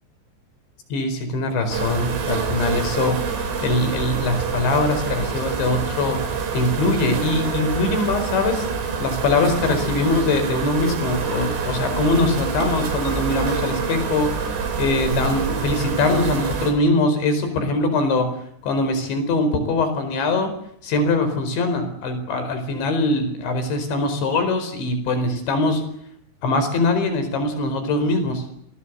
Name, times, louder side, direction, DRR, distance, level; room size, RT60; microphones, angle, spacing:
voice 1, 0.9-3.2 3.6-6.3 6.5-8.7 9.0-18.3 18.6-20.5 20.8-25.8 26.4-28.4, left 2 dB, 70° left, 9 dB, 6.8 m, -22 dB
sound 1, 1.7-16.7, right 5 dB, 80° right, 7.0 m, -26 dB
29.0 x 21.0 x 8.1 m, 0.70 s
omnidirectional pair, 5.5 m